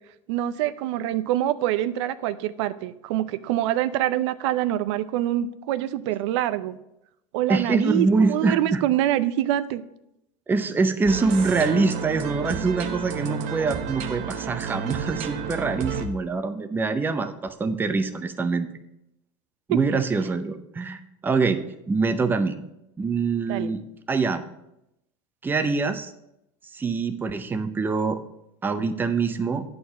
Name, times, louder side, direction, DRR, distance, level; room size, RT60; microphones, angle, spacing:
voice 1, 0.3-6.8 7.3-9.8 19.7-19.8 23.5-23.7, right 13 dB, 80° right, 14 dB, 0.5 m, -25 dB
voice 2, 7.5-8.8 10.5-18.7 19.7-21.6 21.9-22.6 23.0-23.8 24.1-24.4 25.4-26.1 26.7-28.2 28.6-29.6, right 4 dB, 15° right, 9 dB, 0.6 m, -24 dB
sound 1, 11.1-16.1, right 7 dB, 50° right, 0.9 m, -31 dB
9.4 x 4.4 x 6.8 m, 0.84 s
supercardioid pair, 140°, 15 cm